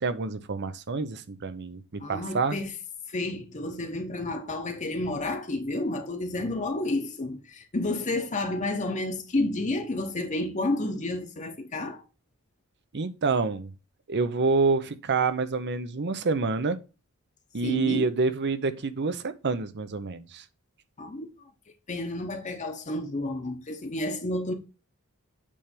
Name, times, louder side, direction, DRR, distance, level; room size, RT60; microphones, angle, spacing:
voice 1, 0.0-2.6 12.9-13.7 14.1-16.8 17.5-20.4, right 4 dB, 50° right, 0.7 m, -27 dB
voice 2, 2.0-2.7 3.1-12.0 17.6-18.1 21.0-21.3 21.9-24.5, left 2 dB, 35° left, 1.0 m, -30 dB
8.5 x 3.4 x 5.1 m
head